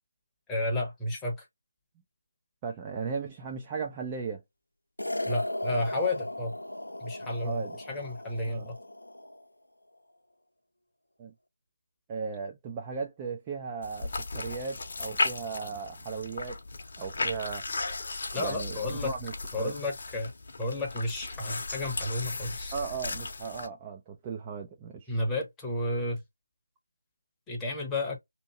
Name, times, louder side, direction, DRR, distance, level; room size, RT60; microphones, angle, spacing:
voice 1, 0.5-1.4 5.3-6.5 7.0-8.8 18.3-19.1 19.5-20.3 20.6-22.7 25.1-26.2 27.5-28.2, left 2 dB, 10° left, 0.8 m, -32 dB
voice 2, 2.6-4.4 7.4-7.8 8.5-8.7 11.2-11.3 12.1-16.6 17.0-17.7 18.4-19.3 19.6-19.7 22.7-25.1, right 5 dB, 15° right, 0.4 m, -36 dB
sound 1, 5.0-9.4, left 1 dB, 80° left, 0.6 m, -36 dB
sound 2, 13.8-23.7, left 3 dB, 45° left, 0.8 m, -36 dB
2.9 x 2.5 x 2.7 m
figure-of-eight pair, 155°, 0 cm